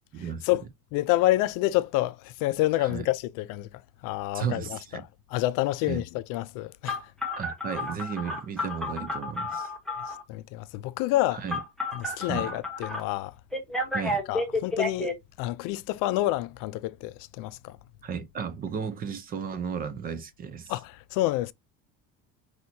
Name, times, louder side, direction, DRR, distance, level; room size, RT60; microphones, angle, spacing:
voice 1, 0.1-0.5 2.8-3.1 4.3-5.0 5.9-6.0 7.4-9.7 11.3-11.6 12.2-12.5 13.9-14.2 18.0-20.7, right 7 dB, 25° right, 0.5 m, -34 dB
voice 2, 0.9-3.7 4.0-4.8 5.3-7.0 10.1-11.4 11.9-13.3 14.3-15.1 15.4-17.8 20.7-21.5, left 16 dB, 65° left, 0.5 m, -28 dB
Telephone, 6.9-10.2 11.5-13.0 13.5-15.1, left 2 dB, ahead, 0.9 m, -31 dB
5.8 x 2.8 x 2.7 m
cardioid pair, 175°, 34 cm